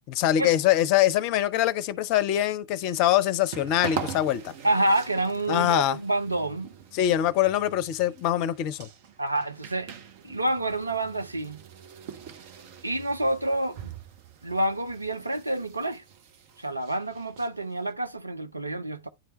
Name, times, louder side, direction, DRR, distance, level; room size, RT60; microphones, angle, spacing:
voice 1, 0.1-4.5 5.5-6.0 6.9-8.9, left 12 dB, 45° left, 0.6 m, -23 dB
sound 1, 2.8-17.9, right 7 dB, 50° right, 0.9 m, -43 dB
voice 2, 4.6-6.7 9.2-9.9 10.2-11.6 12.8-13.9 14.4-16.0 16.6-19.1, right 1 dB, 85° right, 0.6 m, -28 dB
9.9 x 3.3 x 3.1 m
figure-of-eight pair, 90°, 0 cm